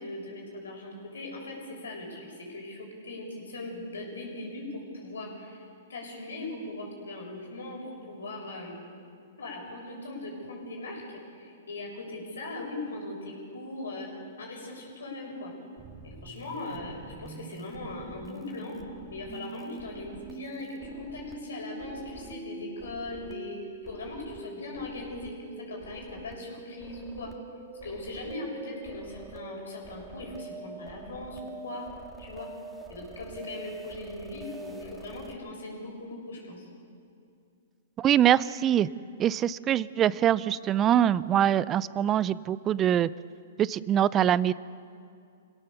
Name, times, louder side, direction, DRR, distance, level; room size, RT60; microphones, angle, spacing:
voice 1, 0.0-5.6 5.9-8.8 9.4-14.1 14.4-15.5 16.0-18.8 19.1-27.3 27.8-31.9 32.2-32.5 32.9-36.7, left 2 dB, 80° left, 0 dB, 7.1 m, -39 dB
sound 1, 15.8-35.3, right 3 dB, 10° right, 2.1 m, -45 dB
voice 2, 38.0-38.9 39.2-43.1 43.6-44.5, right 10 dB, 25° right, 19 dB, 0.5 m, -23 dB
26.5 x 17.0 x 7.0 m, 2.4 s
hypercardioid pair, 120°, 0 cm